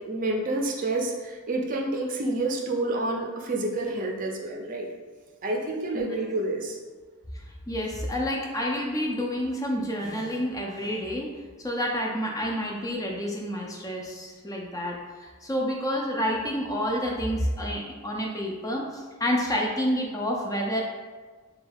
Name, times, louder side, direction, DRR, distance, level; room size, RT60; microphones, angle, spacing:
voice 1, 0.0-4.9 5.4-6.8, right 2 dB, 40° right, 0 dB, 0.5 m, -29 dB
voice 2, 7.7-11.3 11.6-20.8, equal, 15° left, -1 dB, 0.4 m, -29 dB
4.3 x 2.3 x 3.4 m, 1.4 s
head